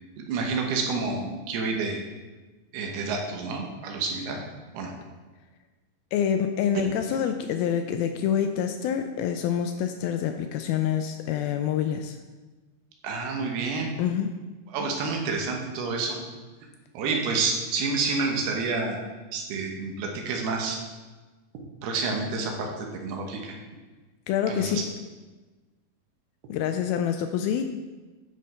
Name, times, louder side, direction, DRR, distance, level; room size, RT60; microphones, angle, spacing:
voice 1, 0.2-2.0 2.7-4.4 4.7-4.9 13.0-13.9 14.7-16.2 16.9-19.0 19.3-20.8 21.8-23.6 24.5-24.8, right 4 dB, 80° right, 2 dB, 3.1 m, -29 dB
voice 2, 6.1-12.2 14.0-14.3 24.3-24.8 26.5-27.6, left 9 dB, 85° left, 7 dB, 2.2 m, -26 dB
10.0 x 6.4 x 4.3 m, 1.3 s
omnidirectional pair, 4.6 m